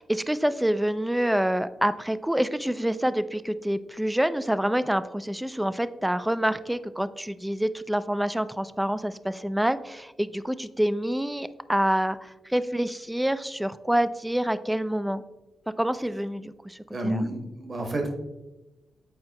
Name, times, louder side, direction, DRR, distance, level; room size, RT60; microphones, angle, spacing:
voice 1, 0.0-12.2 12.5-15.2 15.8-16.8 17.0-17.2, equal, 5° right, 14 dB, 0.3 m, -27 dB
voice 2, 16.9-18.1, right 1 dB, 45° right, 3 dB, 1.3 m, -29 dB
7.6 x 4.4 x 2.9 m, 1.0 s
cardioid pair, 75°, 0 cm